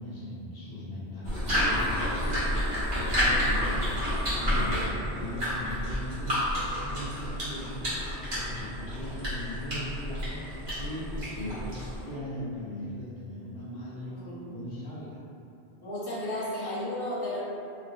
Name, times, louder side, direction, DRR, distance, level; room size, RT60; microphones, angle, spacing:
voice 1, 0.0-3.8 4.3-11.7 12.0-14.2 14.4-15.2, left 1 dB, 65° left, -8 dB, 0.8 m, -39 dB
sound 1, 1.2-12.1, equal, 65° right, 1.1 m, -30 dB
voice 2, 14.1-14.5 15.8-17.4, left 1 dB, 25° left, -10 dB, 0.6 m, -34 dB
2.6 x 2.2 x 2.6 m, 2.6 s
omnidirectional pair, 1.1 m